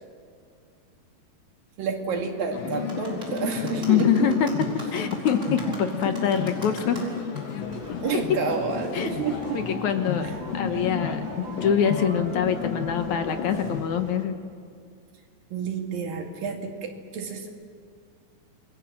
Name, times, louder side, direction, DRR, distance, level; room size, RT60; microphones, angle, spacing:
voice 1, 1.8-4.3 8.0-9.6 10.2-10.3 15.5-17.5, right 5 dB, 85° right, 2 dB, 4.0 m, -29 dB
sound 1, 2.5-13.8, left 6 dB, 85° left, 3.5 m, -33 dB
sound 2, 2.7-10.2, right 1 dB, 20° right, 4.9 m, -44 dB
voice 2, 3.9-4.5 4.9-7.0 8.9-9.1 9.5-14.4, left 7 dB, 65° left, 7 dB, 2.3 m, -24 dB
sound 3, 7.6-14.2, right 4 dB, 50° right, 0.9 m, -43 dB
28.5 x 22.0 x 7.6 m, 2.1 s
omnidirectional pair, 3.9 m